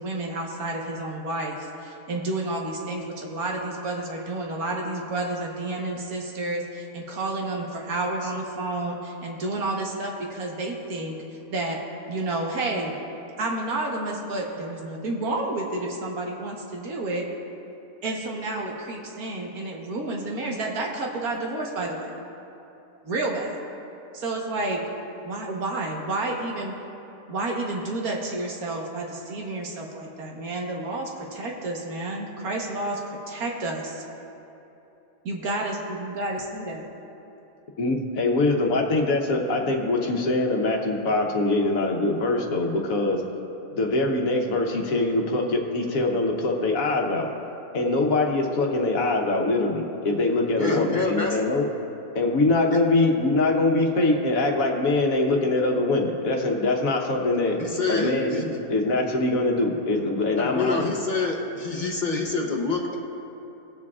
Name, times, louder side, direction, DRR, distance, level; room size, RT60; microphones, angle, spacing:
voice 1, 0.0-11.2 11.5-11.8 12.1-13.0 13.4-17.2 18.0-22.2 23.0-23.6 24.1-24.8 25.2-26.8 27.3-34.0 35.2-36.9, right 2 dB, 80° right, 0 dB, 1.7 m, -30 dB
voice 2, 37.8-43.2 43.7-47.3 47.7-51.7 52.1-57.6 57.9-60.9, left 2 dB, 70° left, 1 dB, 1.4 m, -23 dB
voice 3, 50.6-51.4 52.7-52.8 57.6-58.5 60.4-63.0, left 3 dB, 40° left, 0 dB, 0.9 m, -27 dB
20.0 x 7.3 x 2.4 m, 3.0 s
omnidirectional pair, 1.5 m